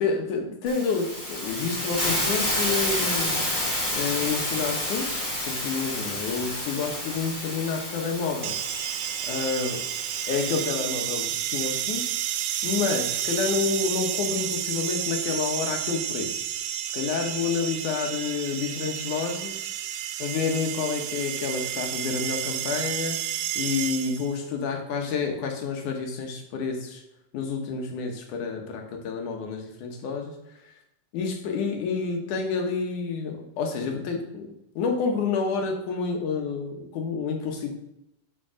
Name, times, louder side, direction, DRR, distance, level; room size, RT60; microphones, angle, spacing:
voice 1, 0.0-3.4 3.9-5.1 5.5-8.5 9.3-9.8 10.3-12.1 12.6-16.4 16.9-19.6 20.2-23.2 23.6-27.0 27.3-30.3 31.1-37.7, left 5 dB, 70° left, 3 dB, 2.6 m, -29 dB
Hiss, 0.7-10.7, left 1 dB, 5° left, 2.3 m, -30 dB
sound 1, 8.4-24.4, right 11 dB, 85° right, 2.2 m, -31 dB
7.1 x 5.6 x 6.3 m, 0.85 s
omnidirectional pair, 3.8 m